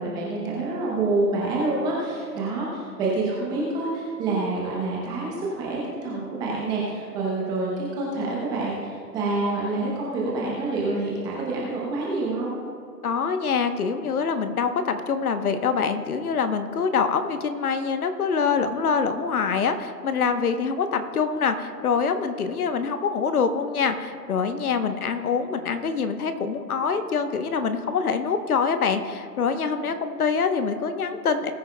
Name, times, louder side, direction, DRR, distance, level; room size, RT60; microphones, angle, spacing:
voice 1, 0.0-12.6 29.5-29.6, right 2 dB, 10° right, -4 dB, 0.7 m, -27 dB
voice 2, 13.0-31.5, left 5 dB, 60° left, 9 dB, 1.1 m, -25 dB
19.5 x 9.1 x 2.3 m, 2.4 s
hypercardioid pair, 140°, 50 cm